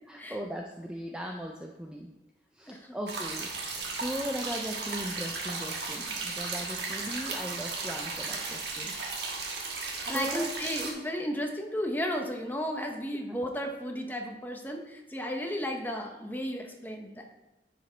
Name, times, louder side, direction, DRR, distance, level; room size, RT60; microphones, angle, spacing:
voice 1, 0.1-2.1 2.5-9.0 10.0-10.6, equal, 5° right, 1 dB, 0.4 m, -38 dB
sound 1, 3.1-10.9, right 4 dB, 70° right, 1.5 m, -35 dB
voice 2, 10.0-17.3, equal, 10° left, 2 dB, 0.8 m, -34 dB
10.0 x 5.0 x 3.3 m, 1.0 s
head